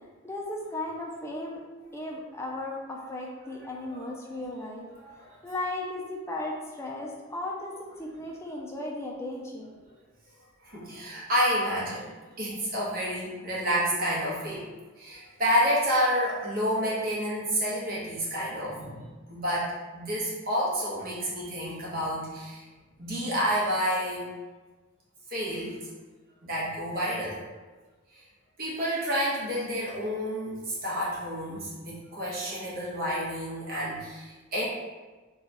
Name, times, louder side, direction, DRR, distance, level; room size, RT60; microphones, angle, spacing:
voice 1, 0.2-1.6 1.9-4.9 5.4-9.8, left 1 dB, 15° left, -2 dB, 0.4 m, -36 dB
voice 2, 3.6-4.1 4.9-5.4 10.6-14.7 15.0-19.0 19.3-22.6 23.0-24.3 25.3-25.9 26.4-27.4 28.1-28.2 28.6-34.7, equal, 45° right, -6 dB, 1.0 m, -29 dB
2.9 x 2.3 x 3.9 m, 1.3 s
head